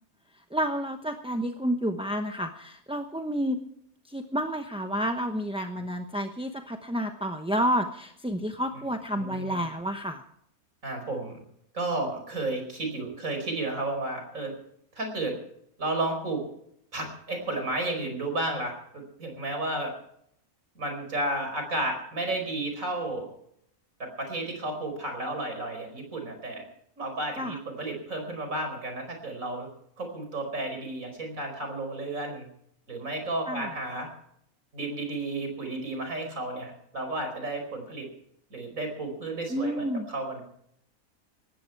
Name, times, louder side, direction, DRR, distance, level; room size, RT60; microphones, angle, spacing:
voice 1, 0.5-3.6 4.1-10.2 27.4-27.6 33.5-33.7 39.5-40.1, equal, 5° right, 5 dB, 0.7 m, -30 dB
voice 2, 9.1-9.6 10.8-11.4 11.7-14.5 15.0-15.4 15.8-16.4 16.9-19.9 20.8-23.3 24.0-26.6 27.0-29.7 30.0-32.5 32.9-34.1 34.7-38.1 38.5-40.4, right 2 dB, 65° right, 4 dB, 5.4 m, -32 dB
18.5 x 15.5 x 4.7 m, 0.71 s
omnidirectional pair, 1.5 m